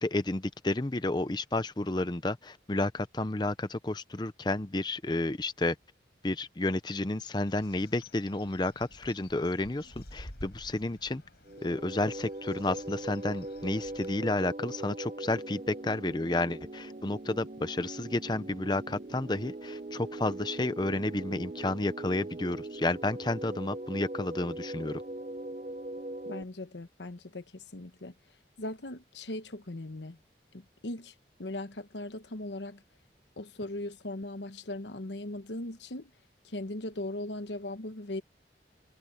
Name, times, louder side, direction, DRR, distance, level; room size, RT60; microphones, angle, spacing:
voice 1, 0.0-5.7 6.2-11.2 11.6-25.0, left 2 dB, 25° left, 0.7 m, -31 dB
Bird, 7.5-14.1, left 1 dB, 65° left, 5.4 m, -51 dB
sound 1, 11.4-26.4, right 1 dB, 40° right, 0.7 m, -41 dB
voice 2, 26.2-28.1 28.6-30.2 30.5-32.8 33.4-36.1 36.4-38.2, left 1 dB, 90° left, 1.2 m, -39 dB
head